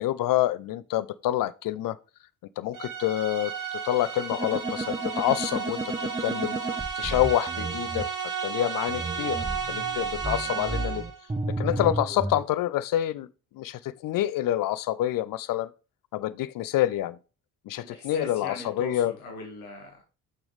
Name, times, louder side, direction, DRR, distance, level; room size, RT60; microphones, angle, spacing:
voice 1, 0.0-2.0 2.6-6.6 7.0-8.1 8.4-11.0 11.5-13.3 13.5-15.7 16.1-17.2 17.7-19.1, left 13 dB, 50° left, 0.6 m, -27 dB
sound 1, 2.7-11.2, right 7 dB, 50° right, 2.1 m, -33 dB
sound 2, 4.3-8.0 8.9-12.4, right 2 dB, 10° right, 0.8 m, -33 dB
voice 2, 17.8-20.0, left 2 dB, 85° left, 1.8 m, -40 dB
6.7 x 6.2 x 3.2 m
figure-of-eight pair, 45°, 42 cm